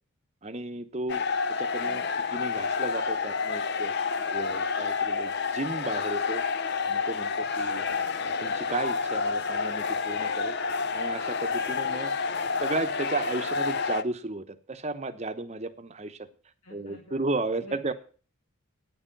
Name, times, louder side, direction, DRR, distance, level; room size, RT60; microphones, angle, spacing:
voice 1, 0.4-1.2 1.6-2.0 2.3-3.9 4.3-6.4 6.9-7.8 8.4-10.6 10.9-12.1 12.6-16.2 16.7-17.9, right 2 dB, 30° right, 9 dB, 0.8 m, -34 dB
sound 1, 1.1-14.0, left 5 dB, 50° left, 0.6 m, -29 dB
voice 2, 1.8-2.4 7.9-8.3 12.2-12.6 16.6-17.2 17.6-17.9, equal, 85° left, 0 dB, 2.0 m, -49 dB
9.7 x 6.8 x 7.3 m, 0.39 s
head